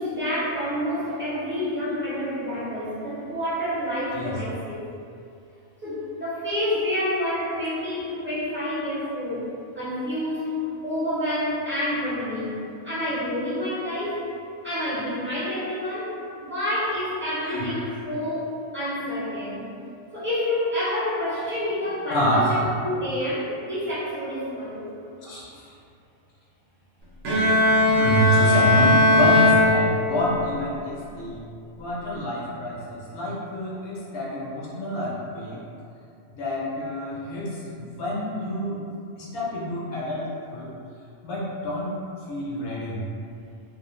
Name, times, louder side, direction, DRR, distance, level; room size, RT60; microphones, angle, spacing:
voice 1, 0.0-4.8 5.8-9.5 9.7-14.2 14.6-16.2 16.4-19.7 20.1-24.9, left 1 dB, 15° right, -11 dB, 0.5 m, -28 dB
voice 2, 17.4-17.9 22.1-22.7 25.2-25.6 27.9-31.4 31.8-35.6 36.3-38.8 39.2-40.7 41.2-41.9 42.3-43.0, equal, 65° left, -6 dB, 0.8 m, -27 dB
Bowed string instrument, 27.2-30.4, left 2 dB, 70° right, 0.8 m, -19 dB
2.4 x 2.1 x 3.0 m, 2.5 s
omnidirectional pair, 1.3 m